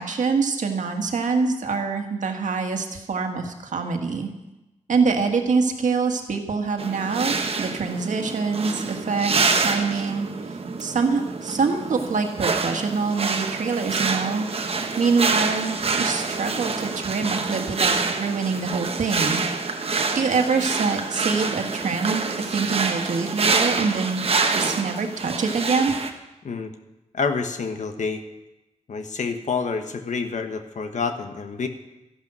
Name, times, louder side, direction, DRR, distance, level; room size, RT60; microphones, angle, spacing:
voice 1, 0.0-4.3 4.9-10.3 10.8-19.4 20.1-24.2 24.5-25.9, right 4 dB, 75° right, 4 dB, 1.7 m, -25 dB
sound 1, 6.8-26.1, right 4 dB, 50° right, 1.1 m, -26 dB
voice 2, 27.1-28.2 28.9-31.7, left 5 dB, 70° left, 7 dB, 1.3 m, -28 dB
13.5 x 11.5 x 6.2 m, 0.99 s
wide cardioid pair, 160°, 13 cm